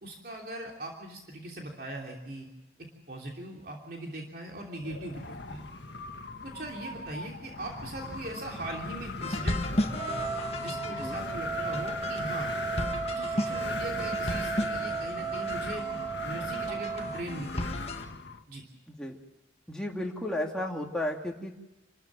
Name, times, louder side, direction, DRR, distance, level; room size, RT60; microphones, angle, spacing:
voice 1, 0.0-2.5 2.8-5.7 6.4-10.0 10.6-12.5 13.1-15.9 16.2-17.9 18.5-18.6, right 1 dB, 55° right, 0 dB, 3.0 m, -40 dB
Wind, 4.8-18.4, left 3 dB, 70° left, 1.6 m, -39 dB
sound 1, 9.2-18.0, left 1 dB, 35° left, 1.5 m, -35 dB
Trumpet, 9.9-17.2, right 5 dB, 20° right, 2.5 m, -35 dB
voice 2, 19.7-21.5, left 1 dB, 5° left, -1 dB, 2.3 m, -33 dB
28.0 x 13.5 x 7.7 m, 0.95 s
head